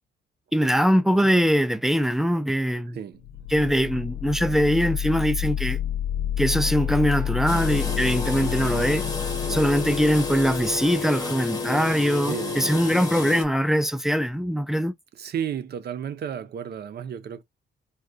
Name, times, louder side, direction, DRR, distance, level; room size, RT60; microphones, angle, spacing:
voice 1, 0.5-3.0 3.5-5.8 6.4-9.0 9.5-14.9, equal, ahead, 0.3 m, -22 dB
sound 1, 3.1-10.9, left 11 dB, 85° left, 0.6 m, -29 dB
sound 2, 6.5-13.2, right 2 dB, 20° right, 0.8 m, -43 dB
sound 3, 7.5-13.4, left 4 dB, 20° left, 0.8 m, -31 dB
voice 2, 12.3-12.9 15.1-17.4, right 8 dB, 55° right, 0.6 m, -33 dB
3.4 x 2.3 x 2.4 m
cardioid pair, 90°, 20 cm